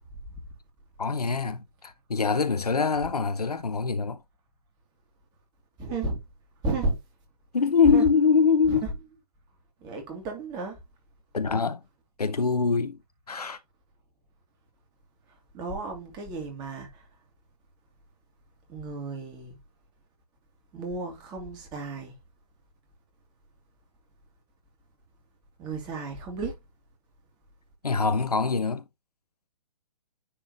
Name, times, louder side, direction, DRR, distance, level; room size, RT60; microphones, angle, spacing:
voice 1, 1.0-4.2 7.5-8.8 11.3-11.8 12.2-13.0 13.3-13.6 27.8-28.8, left 5 dB, 75° left, 0.9 m, -24 dB
voice 2, 5.8-6.2 6.6-7.0 7.9-8.0 8.7-8.9 9.8-10.8 15.5-17.0 18.7-19.6 20.7-22.1 25.6-26.5, right 3 dB, 20° right, 2.3 m, -33 dB
9.8 x 3.8 x 2.9 m
figure-of-eight pair, 125°, 20 cm